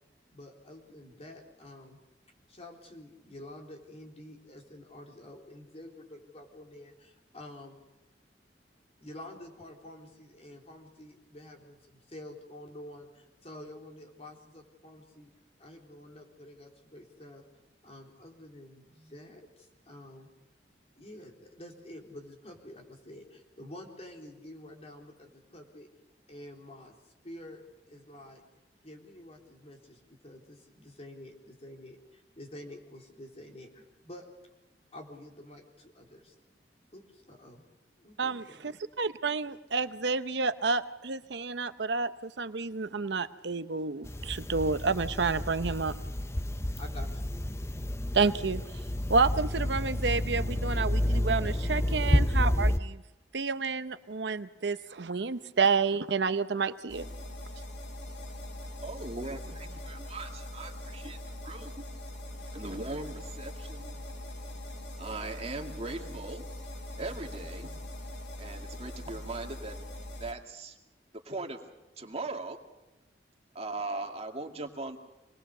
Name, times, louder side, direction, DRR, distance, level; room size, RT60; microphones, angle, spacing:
voice 1, 0.3-2.0 2.5-7.8 9.0-15.3 15.6-17.4 17.8-20.3 21.0-25.9 26.3-28.4 28.8-34.3 34.9-36.3 36.9-37.6 38.0-38.7 46.8-47.3, left 1 dB, 40° left, 1 dB, 3.9 m, -49 dB
voice 2, 38.2-38.7 39.0-45.9 48.1-48.6 49.1-53.0 53.3-57.1, right 4 dB, 80° right, 11 dB, 0.8 m, -29 dB
sound 1, 44.0-52.8, left 1 dB, 15° left, 0.7 m, -30 dB
sound 2, 56.9-70.3, left 1 dB, 75° left, 2.8 m, -42 dB
voice 3, 58.8-61.2 61.4-61.8 62.5-64.0 65.0-66.5 67.0-67.7 68.4-69.8 70.2-70.8 71.2-71.6 72.0-72.6 73.5-75.0, right 3 dB, 35° right, 3 dB, 2.1 m, -39 dB
25.5 x 20.0 x 6.7 m, 1.0 s
head